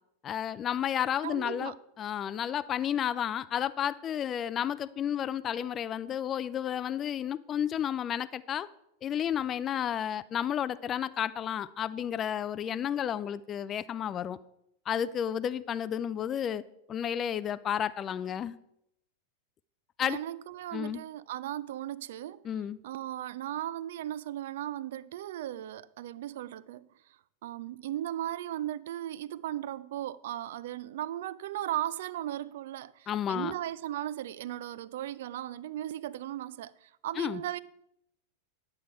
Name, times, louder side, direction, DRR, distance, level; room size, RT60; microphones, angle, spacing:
voice 1, 0.2-8.7 9.0-14.4 14.9-16.6 16.9-18.6 20.0-20.2 20.7-21.0 22.4-22.8 33.1-33.5 37.2-37.4, left 9 dB, 25° left, 0.3 m, -32 dB
voice 2, 1.2-1.8 20.0-22.4 22.8-26.9 27.4-37.6, right 12 dB, 55° right, 0.4 m, -37 dB
11.0 x 7.3 x 4.4 m
figure-of-eight pair, 90°, 0 cm